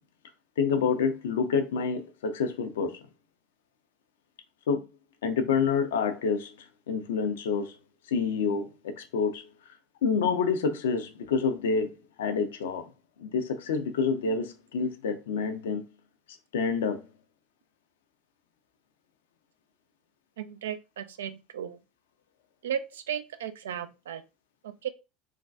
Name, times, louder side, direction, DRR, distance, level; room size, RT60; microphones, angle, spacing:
voice 1, 0.6-3.0 4.7-4.8 5.2-6.5 6.9-7.7 8.1-9.5 10.0-12.9 13.2-15.8 16.5-17.0, left 5 dB, 70° left, 0.4 m, -28 dB
voice 2, 20.4-21.8 22.6-24.2 24.6-24.9, right 9 dB, 70° right, 0.3 m, -35 dB
3.3 x 2.2 x 2.5 m
figure-of-eight pair, 70°, 0 cm